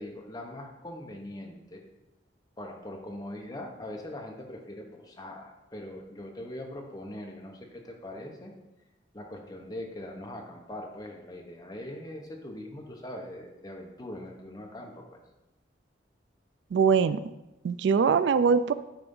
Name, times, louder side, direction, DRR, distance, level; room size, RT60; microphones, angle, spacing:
voice 1, 0.0-1.8 2.6-8.5 9.1-15.2, left 1 dB, 20° left, 1 dB, 1.0 m, -41 dB
voice 2, 16.7-17.2 17.6-18.7, right 6 dB, 70° right, 13 dB, 0.3 m, -22 dB
9.0 x 3.4 x 5.4 m, 0.98 s
head